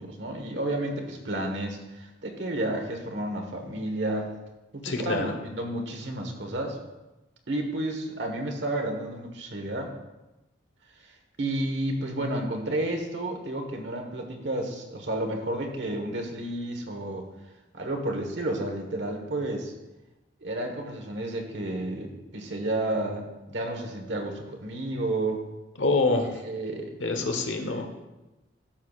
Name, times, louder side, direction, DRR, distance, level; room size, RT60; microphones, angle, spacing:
voice 1, 0.0-4.3 4.8-6.8 7.5-9.9 11.4-17.3 17.7-19.7 20.4-25.4 26.4-27.2 27.7-27.9, right 1 dB, 70° right, 3 dB, 1.3 m, -31 dB
voice 2, 4.8-5.3 25.8-26.3 27.0-27.9, left 3 dB, 85° left, 5 dB, 1.1 m, -25 dB
13.0 x 6.5 x 2.4 m, 1.0 s
head